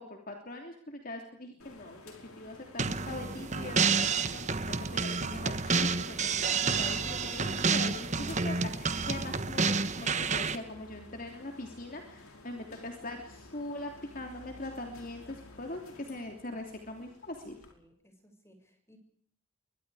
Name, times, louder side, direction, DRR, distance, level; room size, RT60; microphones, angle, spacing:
voice 1, 0.0-2.0 2.4-17.6, left 2 dB, 40° left, 3 dB, 3.0 m, -42 dB
sound 1, 1.6-17.7, left 2 dB, 80° left, 5.4 m, -52 dB
sound 2, 2.8-10.6, right 5 dB, 35° right, 1.3 m, -29 dB
voice 2, 17.7-19.0, equal, 10° left, 5 dB, 6.5 m, -61 dB
29.0 x 24.0 x 4.9 m, 0.63 s
head